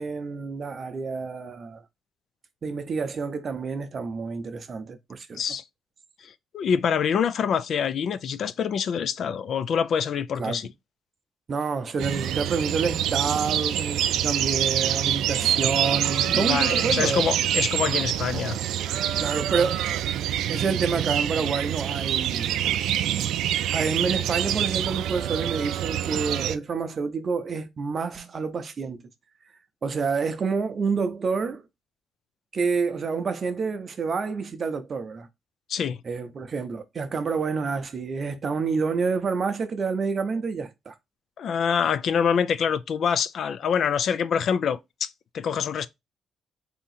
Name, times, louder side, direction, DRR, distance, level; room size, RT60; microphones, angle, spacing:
voice 1, 0.0-1.8 2.6-5.4 10.4-10.6 11.5-17.2 19.2-20.0 20.5-22.8 23.7-29.0 29.8-31.6 32.5-35.3 36.0-40.9, right 5 dB, 40° right, 0.6 m, -28 dB
voice 2, 6.2-10.7 16.3-18.6 35.7-36.0 41.4-45.1 45.3-45.9, left 7 dB, 55° left, 0.3 m, -25 dB
sound 1, 12.0-26.6, right 11 dB, 85° right, 0.3 m, -26 dB
3.6 x 2.8 x 4.1 m
cardioid pair, 125°, 0 cm